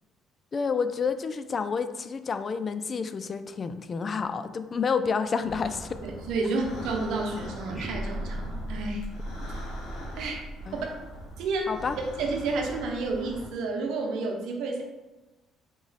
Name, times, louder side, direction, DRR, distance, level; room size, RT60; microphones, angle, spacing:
voice 1, 0.5-6.0 10.7-10.8 11.7-12.0, left 5 dB, 40° left, 11 dB, 0.3 m, -29 dB
sound 1, 5.4-13.5, equal, 75° left, 1.4 m, -41 dB
voice 2, 6.0-9.1 10.1-10.9 11.4-11.7 12.2-14.8, right 3 dB, 80° right, 1 dB, 0.7 m, -30 dB
sound 2, 7.7-11.8, equal, 15° left, 1.1 m, -38 dB
3.8 x 3.0 x 4.0 m, 1.1 s
supercardioid pair, 80°, 0 cm